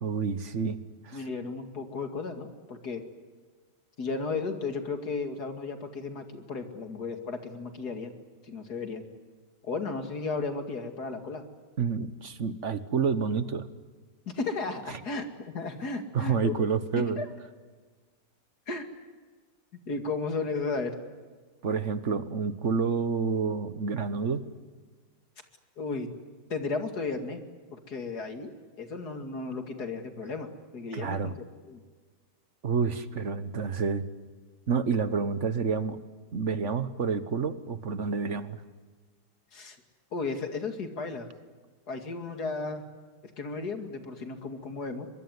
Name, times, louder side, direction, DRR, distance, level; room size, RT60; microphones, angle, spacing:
voice 1, 0.0-0.8 1.0-1.2 11.8-13.7 14.9-15.0 16.1-17.2 21.6-24.4 30.9-31.3 32.6-34.0 34.7-36.0 36.3-38.6, right 5 dB, 45° right, 13 dB, 1.4 m, -29 dB
voice 2, 1.1-3.0 4.0-8.1 8.4-9.1 9.6-11.4 14.3-16.7 17.2-17.3 18.7-18.9 19.9-20.9 25.8-26.1 26.5-27.4 27.7-28.5 28.8-31.3 31.6-31.8 39.5-39.8 40.1-41.3 41.9-42.8 43.4-45.1, left 4 dB, 65° left, 6 dB, 2.8 m, -34 dB
23.0 x 23.0 x 9.5 m, 1.4 s
omnidirectional pair, 1.8 m